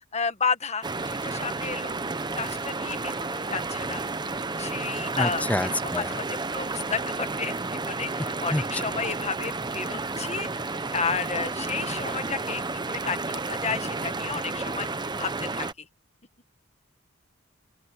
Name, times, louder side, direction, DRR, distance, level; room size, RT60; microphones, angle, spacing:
voice 1, 0.1-2.0 2.4-4.0 4.6-5.4 5.8-7.5 7.8-10.5 10.9-14.9 15.1-15.7, left 5 dB, 35° left, 1.4 m, -32 dB
sound 1, 0.8-15.7, right 3 dB, 20° right, 0.9 m, -31 dB
voice 2, 5.2-6.1 8.5-8.6, left 1 dB, 5° left, 0.5 m, -27 dB
open air
head